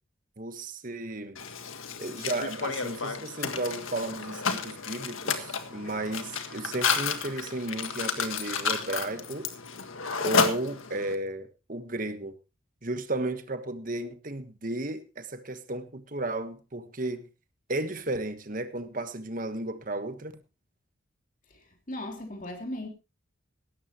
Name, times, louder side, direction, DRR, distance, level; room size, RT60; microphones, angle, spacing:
voice 1, 0.4-1.4 2.0-9.5 10.2-12.3 12.8-17.2 17.7-20.3, right 2 dB, 40° right, 10 dB, 1.4 m, -34 dB
Mechanisms, 1.4-11.1, left 5 dB, 90° left, 1.8 m, -31 dB
voice 2, 21.5-22.9, left 1 dB, 40° left, 3 dB, 3.1 m, -38 dB
17.5 x 13.0 x 3.0 m, 0.29 s
head